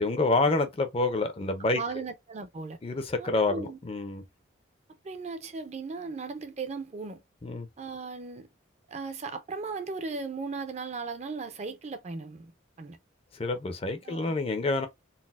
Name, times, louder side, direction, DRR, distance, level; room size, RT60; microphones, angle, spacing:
voice 1, 0.0-1.8 2.8-4.2 7.4-7.7 13.4-14.9, left 2 dB, 30° left, 0.4 m, -27 dB
voice 2, 1.7-2.8 3.2-3.8 5.0-7.2 7.8-8.5 8.9-12.5 12.8-13.0 14.0-14.3, right 4 dB, 35° right, 0.4 m, -37 dB
4.0 x 2.0 x 2.3 m
head